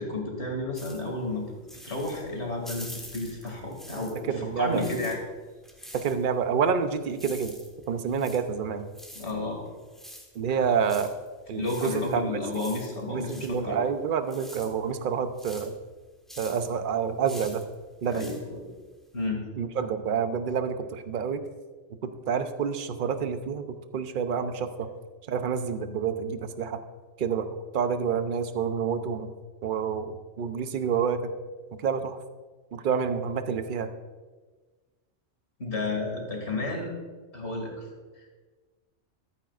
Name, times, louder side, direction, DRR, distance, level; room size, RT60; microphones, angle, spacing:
voice 1, 0.0-1.4 1.8-5.2 9.1-9.6 11.6-13.8 18.1-18.7 19.1-19.5 35.6-36.9 37.3-37.7, left 2 dB, 65° left, 0 dB, 2.7 m, -32 dB
sound 1, 0.7-4.3 4.6-19.3, equal, ahead, 1.5 m, -47 dB
voice 2, 4.2-4.9 5.9-7.5 7.9-8.9 10.3-11.1 11.5-12.4 13.1-15.7 16.4-17.6 18.0-18.3 19.6-21.4 22.0-24.9 25.3-26.8 27.2-29.3 29.6-31.3 31.7-32.2 32.7-33.9, right 6 dB, 50° right, 9 dB, 0.8 m, -28 dB
14.5 x 13.0 x 2.5 m, 1.3 s
omnidirectional pair, 1.2 m